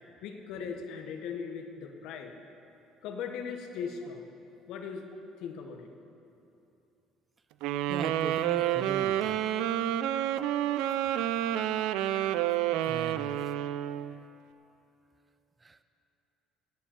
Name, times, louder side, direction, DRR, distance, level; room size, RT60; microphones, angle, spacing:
voice 1, 0.2-2.3 3.0-4.3 4.7-5.1 5.4-5.9, left 6 dB, 70° left, 4 dB, 1.4 m, -39 dB
sound 1, 7.6-14.2, right 12 dB, 80° right, 0.5 m, -29 dB
voice 2, 7.9-9.4 12.8-13.5 15.6-15.8, right 3 dB, 25° right, 12 dB, 0.7 m, -40 dB
16.5 x 8.4 x 7.2 m, 2.8 s
supercardioid pair, 85°, 0 cm